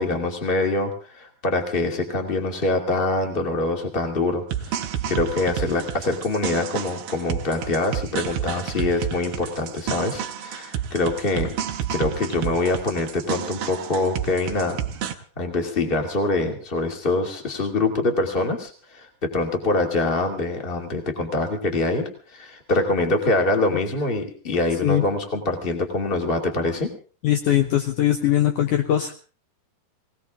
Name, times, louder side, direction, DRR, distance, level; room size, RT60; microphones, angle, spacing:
voice 1, 0.0-11.6 11.9-14.8 15.4-26.9, left 2 dB, 15° left, 3 dB, 2.2 m, -24 dB
sound 1, 4.5-15.1, right 9 dB, 90° right, 3.0 m, -30 dB
voice 2, 27.2-29.2, left 12 dB, 70° left, 5 dB, 2.2 m, -21 dB
20.0 x 19.0 x 3.7 m, 0.38 s
omnidirectional pair, 4.2 m